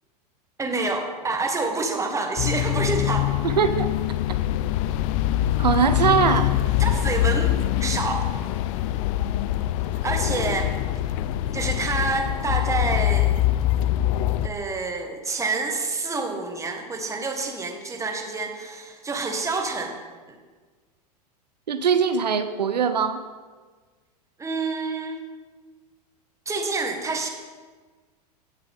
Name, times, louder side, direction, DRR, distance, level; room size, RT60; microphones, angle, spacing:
voice 1, 0.6-3.3 6.8-7.5 7.8-8.3 10.0-10.7 11.5-13.4 14.4-20.0 20.3-20.4 24.4-25.2 26.4-27.3, right 3 dB, 15° right, 3 dB, 1.7 m, -27 dB
sound 1, 2.4-14.5, left 13 dB, 50° left, 0.5 m, -24 dB
voice 2, 3.4-3.9 5.6-6.5 21.7-23.2, right 6 dB, 85° right, 9 dB, 0.6 m, -21 dB
16.5 x 6.7 x 3.7 m, 1.4 s
hypercardioid pair, 95°, 21 cm